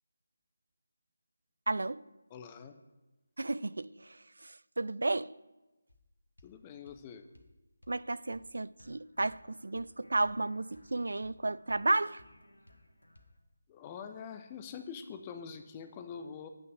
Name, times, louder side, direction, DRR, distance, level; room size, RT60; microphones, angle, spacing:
voice 1, 1.7-2.0 3.4-4.2 4.4-5.3 7.9-12.2, right 2 dB, 60° right, 0.3 m, -33 dB
voice 2, 2.3-2.8 6.4-7.3 13.7-16.5, left 6 dB, 20° left, 0.7 m, -45 dB
sound 1, 5.9-6.1 6.4-6.6 6.9-7.0 7.3-7.5 7.8-8.0 8.3-8.5 8.8-13.4, left 1 dB, 80° left, 1.5 m, -60 dB
8.6 x 6.1 x 7.8 m
figure-of-eight pair, 155°, 0 cm